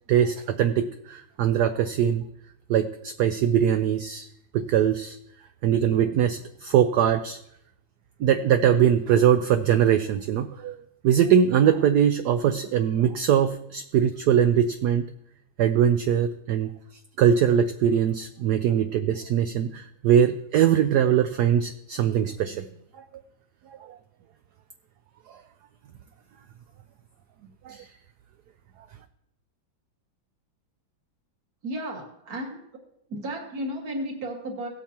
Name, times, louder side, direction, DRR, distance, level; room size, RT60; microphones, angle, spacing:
voice 1, 0.1-2.2 2.7-4.3 4.5-5.2 5.6-7.4 8.2-15.1 15.6-16.7 17.2-22.7 22.9-23.1 23.7-24.0 25.3-25.4 27.6-27.9, right 9 dB, 75° right, 9 dB, 0.9 m, -22 dB
voice 2, 31.6-32.6 33.1-34.7, right 1 dB, 50° right, 1 dB, 2.3 m, -33 dB
17.5 x 8.2 x 2.9 m, 0.76 s
omnidirectional pair, 2.2 m